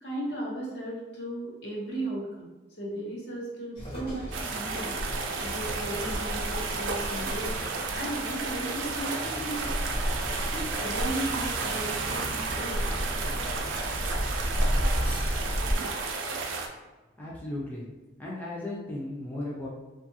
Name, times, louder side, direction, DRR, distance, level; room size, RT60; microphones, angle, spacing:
voice 1, 0.0-2.5 2.8-4.9 5.4-7.6 7.9-9.8 10.5-12.8, right 1 dB, 65° left, -3 dB, 0.8 m, -36 dB
sound 1, 3.8-15.8, equal, 30° left, 0.8 m, -33 dB
sound 2, 4.3-16.7, right 4 dB, 80° right, 0.4 m, -33 dB
voice 2, 17.2-17.9 18.2-19.7, left 1 dB, 10° left, -6 dB, 0.4 m, -35 dB
2.6 x 2.3 x 2.7 m, 1.2 s
head